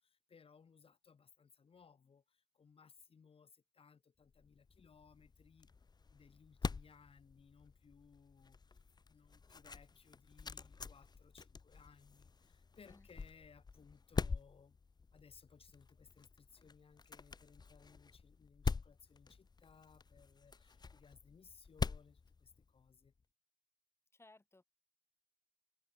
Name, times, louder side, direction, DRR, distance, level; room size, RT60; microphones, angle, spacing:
voice 1, 0.0-5.7 6.1-8.8 9.1-14.8 15.1-23.1, left 6 dB, 65° left, 2.1 m, -63 dB
sound 1, 4.3-23.1, left 4 dB, 40° left, 0.8 m, -45 dB
voice 2, 24.1-24.6, left 2 dB, 25° left, 5.6 m, -62 dB
wide cardioid pair, 95°, 11 cm